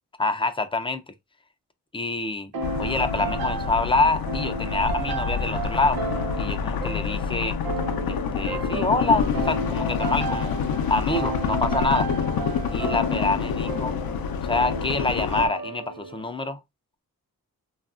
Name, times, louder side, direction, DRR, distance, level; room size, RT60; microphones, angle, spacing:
voice 1, 0.2-1.0 1.9-2.5 2.8-6.0 6.4-7.6 8.1-10.6 10.9-12.1 12.7-13.9 14.4-16.6, left 3 dB, 15° left, 0.3 m, -26 dB
sound 1, 2.5-16.2, right 3 dB, 75° right, 0.6 m, -33 dB
sound 2, 2.6-15.5, left 7 dB, 75° left, 0.5 m, -27 dB
2.7 x 2.5 x 2.3 m
wide cardioid pair, 90°, 36 cm